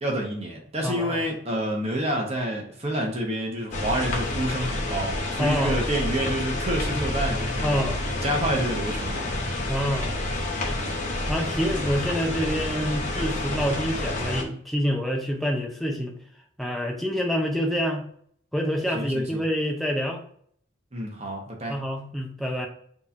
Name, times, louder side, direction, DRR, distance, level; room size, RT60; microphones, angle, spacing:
voice 1, 0.0-7.9 8.2-9.3 18.9-19.4 20.9-21.8, right 1 dB, 35° right, 0 dB, 1.0 m, -28 dB
voice 2, 0.8-1.2 5.4-5.8 7.6-8.0 9.7-10.1 11.3-16.2 16.6-18.1 18.5-20.2 21.7-22.7, equal, ahead, 1 dB, 0.5 m, -27 dB
sound 1, 3.7-14.4, left 1 dB, 40° left, 0.9 m, -29 dB
6.2 x 3.0 x 2.6 m, 0.63 s
head